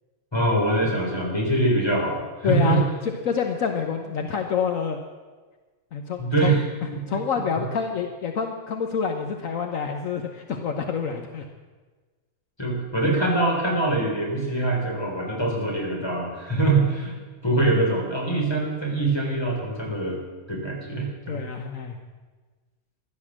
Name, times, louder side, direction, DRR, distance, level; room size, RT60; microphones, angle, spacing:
voice 1, 0.3-2.8 6.2-6.6 12.6-17.2 17.4-20.2 20.5-21.4, right 2 dB, 15° left, -1 dB, 3.8 m, -23 dB
voice 2, 2.4-2.8 3.2-5.0 5.9-6.5 7.1-11.5 21.3-22.0, left 6 dB, 70° left, 5 dB, 1.4 m, -27 dB
15.5 x 12.0 x 7.4 m, 1.3 s
omnidirectional pair, 1.5 m